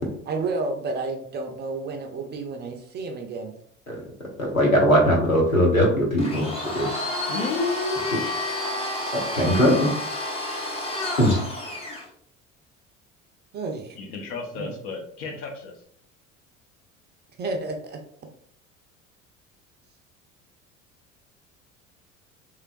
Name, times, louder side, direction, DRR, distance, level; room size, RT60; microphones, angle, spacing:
voice 1, 0.3-3.5 13.5-14.0 14.5-14.7 17.4-18.0, right 3 dB, 25° right, 3 dB, 0.5 m, -31 dB
voice 2, 4.4-6.5 6.7-7.1 9.1-9.9 11.2-11.4, equal, 90° left, -1 dB, 0.8 m, -20 dB
Domestic sounds home sounds, 6.2-12.1, left 1 dB, 15° left, 0.7 m, -30 dB
voice 3, 7.3-8.2 13.9-15.7, left 4 dB, 50° left, 2 dB, 0.9 m, -31 dB
3.3 x 3.0 x 2.4 m, 0.64 s
figure-of-eight pair, 65°, 40 cm